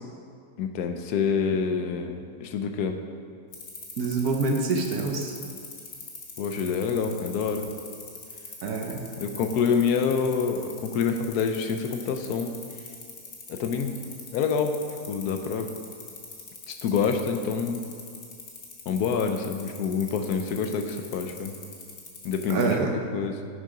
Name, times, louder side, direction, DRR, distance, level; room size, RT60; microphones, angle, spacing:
voice 1, 0.6-3.0 6.4-7.7 9.2-12.5 13.5-14.0 14.3-14.8 15.1-15.7 16.7-17.8 18.9-21.5 22.2-22.8 23.1-23.5, left 6 dB, 80° left, 6 dB, 1.2 m, -27 dB
sound 1, 3.5-22.7, left 5 dB, 50° left, 1.4 m, -42 dB
voice 2, 4.0-5.4 8.6-9.0 22.5-23.0, right 4 dB, 70° right, 3 dB, 1.3 m, -26 dB
7.5 x 6.6 x 5.0 m, 2.2 s
omnidirectional pair, 1.7 m